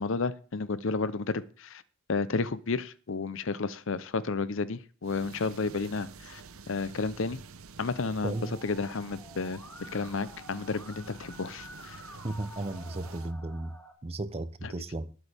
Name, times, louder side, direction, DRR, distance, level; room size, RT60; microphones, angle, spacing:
voice 1, 0.0-1.8 2.1-6.4 6.7-7.4 7.8-8.4 8.6-12.0 14.6-14.7, left 4 dB, 60° left, 0.6 m, -32 dB
sound 1, 5.0-13.3, right 4 dB, 70° right, 0.8 m, -49 dB
voice 2, 8.2-8.6 12.2-13.8 14.0-15.2, right 2 dB, 25° right, 0.6 m, -35 dB
Musical instrument, 8.3-13.9, left 1 dB, 10° left, 1.9 m, -50 dB
19.0 x 8.2 x 3.4 m
head